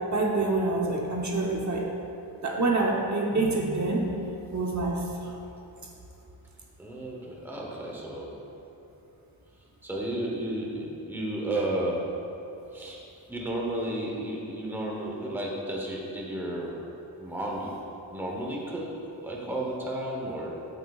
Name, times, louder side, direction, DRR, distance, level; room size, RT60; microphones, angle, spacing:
voice 1, 0.1-1.9 2.4-4.1 4.5-5.3, right 2 dB, 40° right, -2 dB, 1.0 m, -26 dB
voice 2, 6.8-8.4 9.8-12.1 12.7-13.0 13.3-16.8 17.2-17.7 18.1-19.0 19.2-20.8, right 1 dB, 5° right, -2 dB, 1.0 m, -33 dB
14.0 x 7.9 x 2.4 m, 3.0 s
wide cardioid pair, 165°, 44 cm